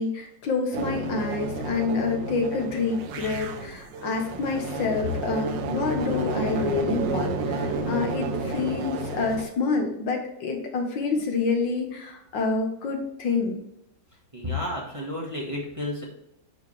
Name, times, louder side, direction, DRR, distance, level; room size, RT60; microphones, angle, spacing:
voice 1, 0.0-13.6, left 4 dB, 70° left, 3 dB, 2.0 m, -27 dB
sound 1, 0.7-9.4, right 3 dB, 70° right, 1.6 m, -31 dB
voice 2, 14.3-16.1, left 2 dB, 15° right, -4 dB, 1.6 m, -31 dB
9.8 x 4.9 x 3.3 m, 0.80 s
omnidirectional pair, 2.1 m